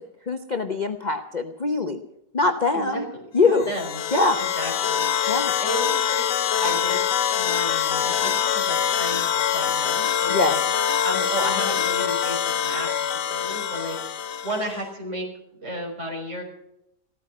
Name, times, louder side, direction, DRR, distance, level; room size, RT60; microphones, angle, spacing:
voice 1, 0.3-2.0 2.3-3.0 3.3-3.7 4.1-4.4 5.3-5.5 10.3-10.5, left 3 dB, 35° left, 6 dB, 0.9 m, -22 dB
voice 2, 2.7-3.1 3.5-4.0 4.4-5.0 5.6-6.2 6.6-7.0 7.4-10.6 11.0-15.3 15.6-16.4, equal, 45° right, 1 dB, 5.9 m, -33 dB
sound 1, 3.5-14.8, left 8 dB, 85° left, 1.5 m, -24 dB
16.0 x 14.0 x 6.1 m, 0.79 s
omnidirectional pair, 1.7 m